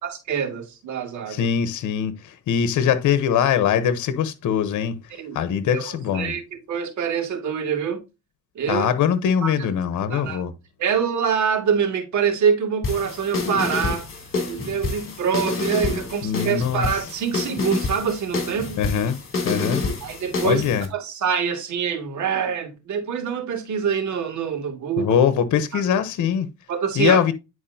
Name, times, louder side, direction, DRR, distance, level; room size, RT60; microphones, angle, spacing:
voice 1, 0.0-1.5 5.2-5.4 5.7-6.4 6.7-8.0 8.5-8.9 9.4-9.5 10.1-10.4 10.8-14.1 14.5-18.8 20.0-20.6 20.9-25.1 26.7-27.2, right 7 dB, 70° right, 2.4 m, -25 dB
voice 2, 1.3-6.3 8.7-10.5 16.2-16.9 18.8-19.2 19.4-19.8 20.4-20.9 25.0-26.5 26.9-27.3, left 8 dB, 75° left, 1.0 m, -22 dB
sound 1, 12.8-20.9, left 3 dB, 45° left, 2.8 m, -28 dB
9.7 x 4.7 x 2.8 m
cardioid pair, 90°, 30 cm